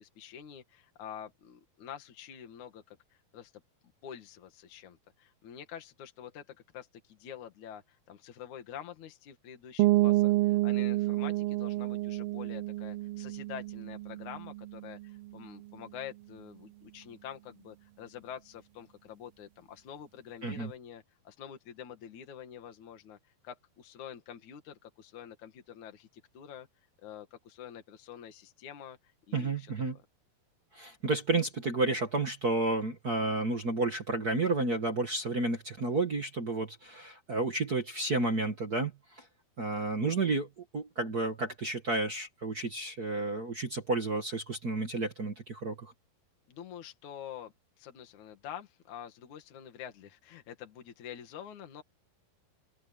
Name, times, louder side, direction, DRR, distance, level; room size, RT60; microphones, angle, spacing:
voice 1, 0.0-3.0 3.3-3.6 4.0-23.2 23.4-26.7 27.0-29.0 29.3-29.7 46.5-51.8, left 9 dB, 55° left, 3.4 m, -47 dB
sound 1, 9.8-15.4, right 17 dB, 85° right, 2.9 m, -29 dB
voice 2, 29.3-30.0 30.7-39.2 39.6-40.5 40.7-45.9, right 3 dB, 45° right, 1.2 m, -31 dB
open air
omnidirectional pair, 4.3 m